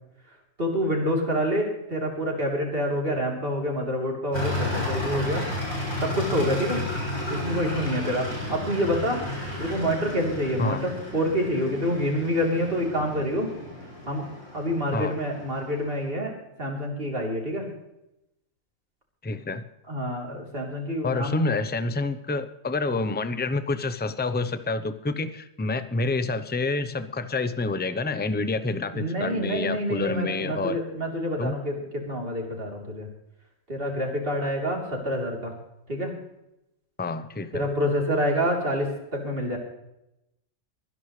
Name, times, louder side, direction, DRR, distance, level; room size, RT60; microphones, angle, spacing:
voice 1, 0.6-5.5 6.0-6.8 7.3-9.2 9.6-13.5 14.1-14.2 14.5-16.3 16.6-17.7 19.9-21.4 28.9-31.7 32.1-33.1 33.7-35.5 35.9-36.1 37.5-39.6, equal, 45° right, 0 dB, 3.7 m, -27 dB
sound 1, 4.3-16.1, left 1 dB, 60° left, 7.1 m, -33 dB
voice 2, 19.2-19.6 21.0-30.8 31.4-31.6 37.0-37.7, left 3 dB, 10° left, 11 dB, 0.5 m, -28 dB
24.5 x 10.5 x 3.3 m, 0.88 s
omnidirectional pair, 1.4 m